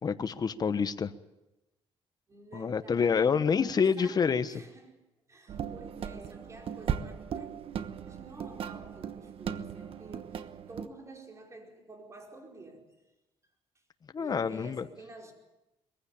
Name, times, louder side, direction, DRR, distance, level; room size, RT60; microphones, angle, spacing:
voice 1, 0.0-1.1 2.5-4.5 14.1-14.9, left 6 dB, 40° left, 1.0 m, -27 dB
voice 2, 2.3-5.0 5.3-7.5 8.0-13.0 14.2-15.3, right 2 dB, 30° right, 4.9 m, -50 dB
sound 1, 5.5-10.9, right 8 dB, 60° right, 1.1 m, -37 dB
22.0 x 15.5 x 8.7 m
cardioid pair, 105°, 11 cm